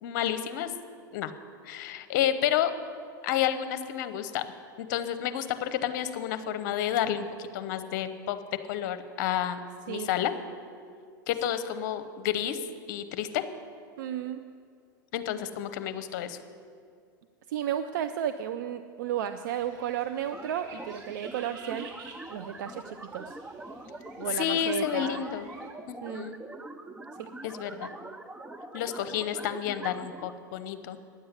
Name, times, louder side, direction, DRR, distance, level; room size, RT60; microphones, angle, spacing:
voice 1, 0.0-0.7 1.1-1.3 1.6-2.7 3.2-4.4 4.8-8.4 8.7-9.6 9.9-10.3 11.3-12.6 12.9-13.4 15.1-16.4 24.4-25.5 25.9-26.4 27.4-27.9 28.7-31.0, left 10 dB, 65° left, 11 dB, 0.9 m, -30 dB
voice 2, 14.0-14.5 17.5-21.9 22.3-23.4 24.2-25.2 26.0-26.3 27.2-27.3, right 10 dB, 75° right, 10 dB, 0.5 m, -33 dB
sound 1, 19.5-25.7, right 5 dB, 50° right, 2.5 m, -52 dB
sound 2, 20.3-30.3, right 2 dB, 10° right, 0.7 m, -43 dB
10.0 x 7.8 x 9.6 m, 2.3 s
hypercardioid pair, 100°, 11 cm